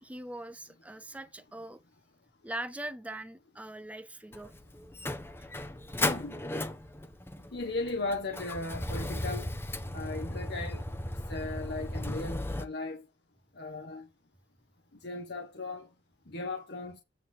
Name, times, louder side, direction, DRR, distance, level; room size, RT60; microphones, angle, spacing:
voice 1, 0.0-1.8 2.4-4.5, right 1 dB, 10° right, 0.5 m, -41 dB
Motor vehicle (road), 4.3-12.7, left 1 dB, 15° left, 1.0 m, -36 dB
voice 2, 6.0-6.4 7.5-9.5 9.9-10.8 11.3-13.0 13.5-14.1 15.0-15.9 16.3-17.0, left 2 dB, 65° left, 1.3 m, -37 dB
9.1 x 3.7 x 6.2 m
head